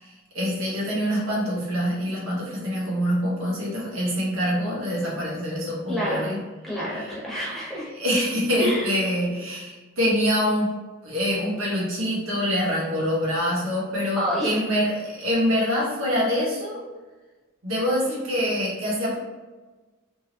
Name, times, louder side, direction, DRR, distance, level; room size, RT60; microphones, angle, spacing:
voice 1, 0.0-6.4 7.0-7.1 7.9-10.7 11.0-16.8 17.6-19.2, equal, 85° right, -4 dB, 1.3 m, -25 dB
voice 2, 5.9-6.3 6.6-7.9 8.6-8.9 14.2-14.6, equal, ahead, -7 dB, 1.0 m, -28 dB
3.4 x 3.0 x 2.9 m, 1.2 s
head